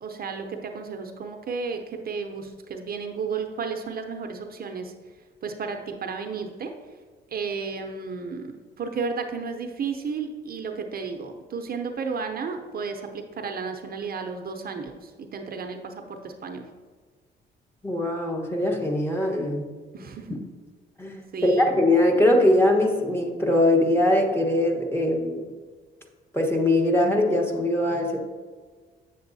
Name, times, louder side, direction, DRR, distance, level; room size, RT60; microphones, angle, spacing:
voice 1, 0.0-4.9 5.4-6.7 7.3-16.6 19.9-20.4 21.3-21.8, right 5 dB, 50° right, 5 dB, 0.6 m, -33 dB
voice 2, 17.8-19.7 20.3-20.4 21.0-25.5 26.3-28.2, left 1 dB, 10° left, 1 dB, 1.1 m, -22 dB
7.9 x 6.9 x 2.7 m, 1.5 s
cardioid pair, 90°, 20 cm